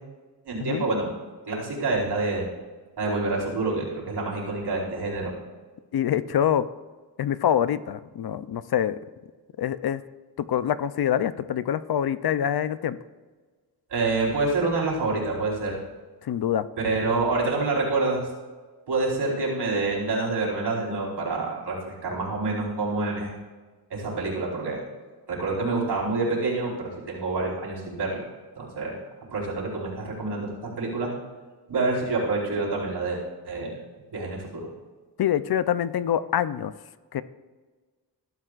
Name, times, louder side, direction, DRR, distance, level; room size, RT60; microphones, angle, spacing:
voice 1, 0.5-1.1 1.5-2.5 3.0-5.3 13.9-15.8 16.8-18.3 18.9-23.3 23.9-24.8 25.3-28.2 28.6-29.0 29.3-31.1 31.7-33.7 34.1-34.7, right 3 dB, 75° right, -3 dB, 4.5 m, -27 dB
voice 2, 5.9-6.7 7.2-9.0 9.6-10.0 10.4-13.0 16.2-16.7 35.2-36.7 37.1-37.2, left 10 dB, 65° left, 14 dB, 0.6 m, -25 dB
20.0 x 12.5 x 2.5 m, 1.4 s
wide cardioid pair, 115°, 40 cm